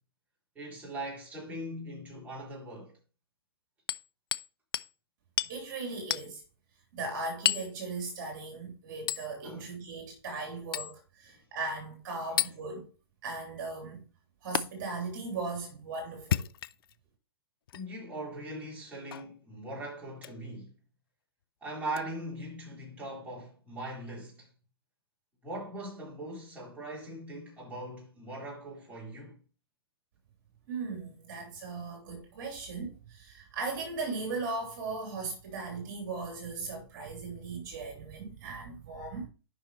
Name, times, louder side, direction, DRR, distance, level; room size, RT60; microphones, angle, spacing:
voice 1, 0.5-3.0 9.4-9.6 12.3-12.4 17.7-20.7 21.6-24.5 25.4-29.4, right 1 dB, 10° right, 4.3 m, -40 dB
Hammer, 3.9-4.5 4.7-4.9 5.4-5.6 6.1-6.3 7.5-7.7 9.1-9.3 10.7-10.9 12.4-12.6 14.6-14.7 16.2-16.9 17.7-17.8 19.1-19.3 20.2-20.4 21.9-22.0, left 11 dB, 65° left, 0.5 m, -31 dB
voice 2, 5.5-6.4 6.9-12.9 13.2-14.0 14.4-16.5 30.7-39.3, right 3 dB, 50° right, 3.2 m, -38 dB
9.5 x 5.9 x 3.1 m
hypercardioid pair, 130°, 13 cm